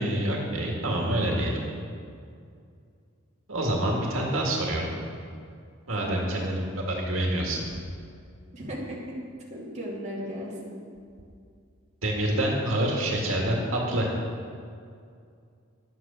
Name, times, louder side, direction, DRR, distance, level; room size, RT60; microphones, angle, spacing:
voice 1, 0.0-1.6 3.5-4.9 5.9-6.6 6.9-7.6 12.0-14.1, right 1 dB, 80° right, -2 dB, 2.0 m, -26 dB
voice 2, 6.0-6.6 8.5-9.0 9.5-10.7, equal, 35° right, -5 dB, 2.6 m, -36 dB
11.0 x 8.1 x 6.9 m, 2.3 s
head